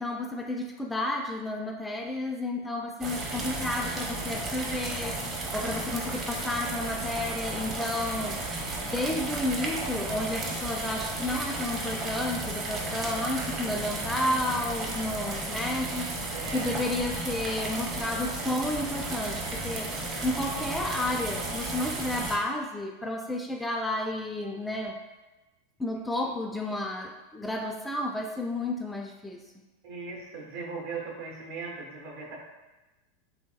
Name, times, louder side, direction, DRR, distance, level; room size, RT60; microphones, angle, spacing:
voice 1, 0.0-5.2 5.5-8.4 8.8-16.1 16.5-19.9 20.2-25.0 25.8-29.4, left 1 dB, 10° left, 2 dB, 0.3 m, -31 dB
sound 1, 3.0-22.4, right 2 dB, 30° right, 0.6 m, -34 dB
voice 2, 3.0-3.4 16.3-16.8 26.2-26.3 29.8-32.4, right 4 dB, 70° right, -2 dB, 0.8 m, -39 dB
3.0 x 2.7 x 2.3 m, 1.1 s
hypercardioid pair, 110°, 0 cm